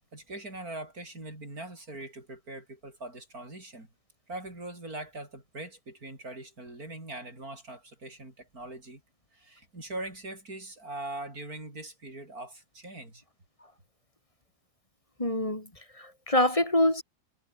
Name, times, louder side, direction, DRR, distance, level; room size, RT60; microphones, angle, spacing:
voice 1, 0.1-3.9 4.3-9.0 9.3-13.2, right 2 dB, 65° right, 7.8 m, -41 dB
voice 2, 15.2-15.7 16.0-17.0, left 1 dB, 20° left, 3.7 m, -25 dB
omnidirectional pair, 1.7 m